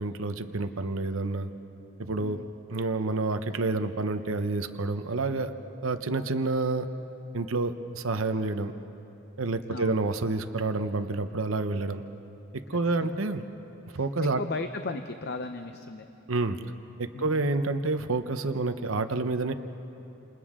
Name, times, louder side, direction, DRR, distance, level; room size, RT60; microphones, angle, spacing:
voice 1, 0.0-1.5 2.0-2.4 2.7-5.5 5.8-6.9 7.3-8.7 9.4-12.0 12.7-13.4 13.9-14.4 16.3-16.6 17.0-19.5, right 3 dB, 70° right, 8 dB, 0.9 m, -28 dB
voice 2, 2.2-2.5 9.7-10.0 12.7-13.1 13.9-14.0 14.3-16.1 17.1-17.4, left 3 dB, 50° left, 7 dB, 0.7 m, -36 dB
28.5 x 28.0 x 3.7 m, 2.9 s
head